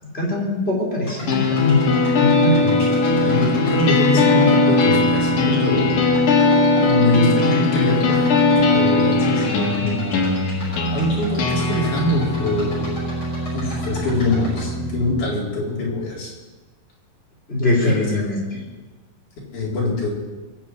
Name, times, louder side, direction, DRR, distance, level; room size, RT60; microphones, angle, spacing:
voice 1, 0.1-1.8 2.2-2.6 17.5-18.6, left 1 dB, 15° left, -2 dB, 3.7 m, -21 dB
sound 1, 1.0-14.6, equal, 35° left, 6.3 m, -38 dB
sound 2, 1.3-15.3, left 3 dB, 85° left, 3.7 m, -19 dB
voice 2, 2.6-5.9 6.8-8.3 8.7-10.1 10.9-12.9 13.5-16.3 17.6-18.1 19.5-20.1, left 2 dB, 60° left, -5 dB, 5.7 m, -23 dB
21.5 x 7.4 x 8.5 m, 1.3 s
omnidirectional pair, 3.9 m